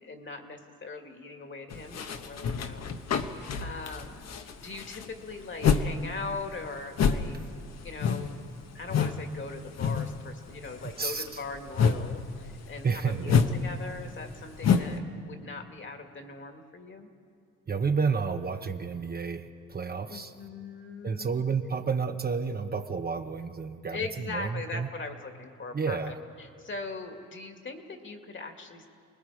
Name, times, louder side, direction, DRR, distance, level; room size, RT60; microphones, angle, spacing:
voice 1, 0.0-7.4 7.8-8.4 8.7-17.1 20.1-21.4 23.9-28.9, left 3 dB, 40° left, 5 dB, 2.3 m, -40 dB
sound 1, 1.7-5.9 6.2-9.2 9.5-10.2 10.5-15.0, left 6 dB, 60° left, 1.3 m, -28 dB
voice 2, 10.8-11.4 12.8-13.4 17.7-20.3 21.0-24.9 25.7-26.1, right 5 dB, 30° right, 7 dB, 1.0 m, -31 dB
29.0 x 20.0 x 5.0 m, 2.3 s
cardioid pair, 90°, 30 cm